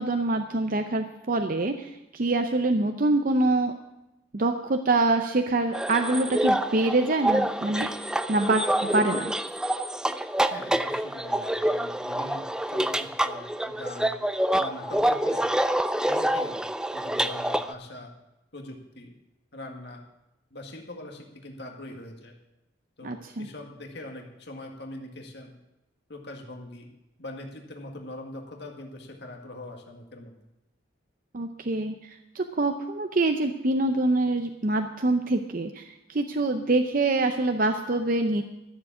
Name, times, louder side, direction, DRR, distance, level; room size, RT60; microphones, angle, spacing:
voice 1, 0.0-3.7 4.3-7.9 8.3-9.3 23.0-23.5 31.3-38.4, right 2 dB, 45° right, 6 dB, 0.7 m, -25 dB
sound 1, 5.7-17.7, right 1 dB, 5° right, 0.4 m, -27 dB
voice 2, 10.5-14.1 14.6-15.5 16.0-16.6 16.9-18.1 18.5-19.1 19.5-20.0 20.5-22.3 23.0-25.5 26.1-26.9 27.2-30.3, left 1 dB, 60° left, 2 dB, 1.9 m, -42 dB
13.5 x 7.5 x 8.6 m, 0.93 s
head